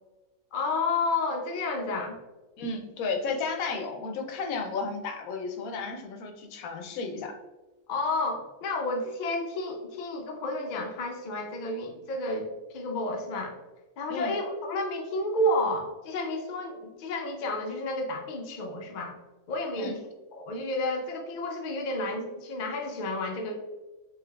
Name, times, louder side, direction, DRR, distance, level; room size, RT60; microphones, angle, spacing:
voice 1, 0.5-2.2 7.9-13.6 14.0-19.2 19.5-20.0 20.3-23.5, left 2 dB, 55° left, 2 dB, 0.5 m, -31 dB
voice 2, 2.6-7.3 14.1-14.3 19.8-20.0, left 4 dB, 85° left, 4 dB, 1.1 m, -33 dB
4.9 x 3.0 x 2.3 m, 1.1 s
omnidirectional pair, 1.4 m